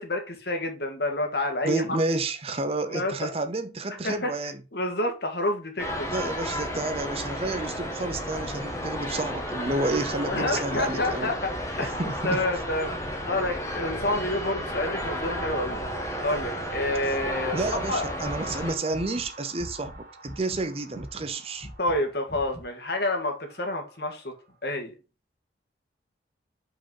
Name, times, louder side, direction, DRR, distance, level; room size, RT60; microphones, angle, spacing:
voice 1, 0.0-2.0 2.9-3.3 4.0-4.3 4.7-6.1 9.7-9.9 10.2-11.5 11.8-12.9 13.2-15.8 16.2-18.1 21.8-24.3 24.6-24.9, left 1 dB, 60° left, 1.7 m, -29 dB
voice 2, 1.6-4.6 6.1-11.3 12.0-12.4 17.5-21.7, right 2 dB, 30° right, 0.6 m, -30 dB
sound 1, 5.8-18.7, equal, 15° left, 1.3 m, -33 dB
sound 2, 12.8-24.4, right 2 dB, 50° right, 2.4 m, -45 dB
sound 3, 17.5-20.0 20.2-20.6 20.9-21.3 21.6-22.0 22.3-22.6, equal, 35° left, 1.6 m, -41 dB
5.4 x 4.6 x 5.4 m
head